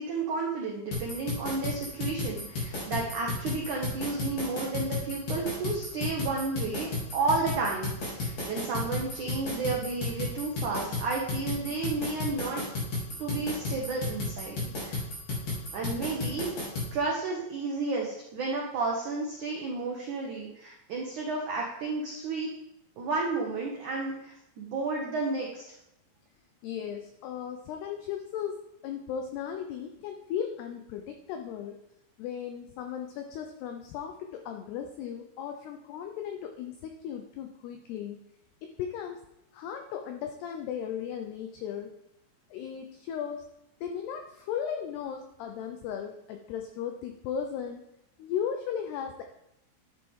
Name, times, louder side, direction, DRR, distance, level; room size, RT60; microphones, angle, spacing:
voice 1, 0.0-12.6 13.2-15.0 15.7-16.5 16.9-22.5 23.0-25.6, right 3 dB, 80° right, -2 dB, 1.7 m, -32 dB
sound 1, 0.9-16.9, left 3 dB, 35° left, 3.5 m, -33 dB
voice 2, 26.6-31.8 32.2-38.2 38.6-39.2 39.5-41.9 42.5-43.4 43.8-47.8 48.2-49.2, left 8 dB, 85° left, 5 dB, 2.3 m, -36 dB
11.5 x 9.0 x 3.7 m, 0.84 s
omnidirectional pair, 5.5 m